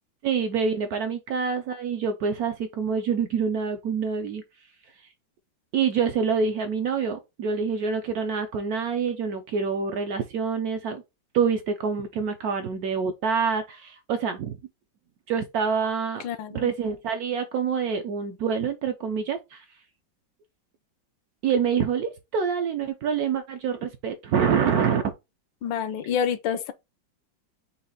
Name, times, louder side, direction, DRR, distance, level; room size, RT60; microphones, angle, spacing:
voice 1, 0.2-4.4 5.7-11.0 11.3-14.6 15.3-16.2 16.5-19.6 21.4-25.1, right 6 dB, 70° right, 0.9 m, -26 dB
voice 2, 16.2-16.7 25.6-26.7, left 8 dB, 85° left, 1.4 m, -28 dB
5.5 x 2.4 x 3.8 m
omnidirectional pair, 2.1 m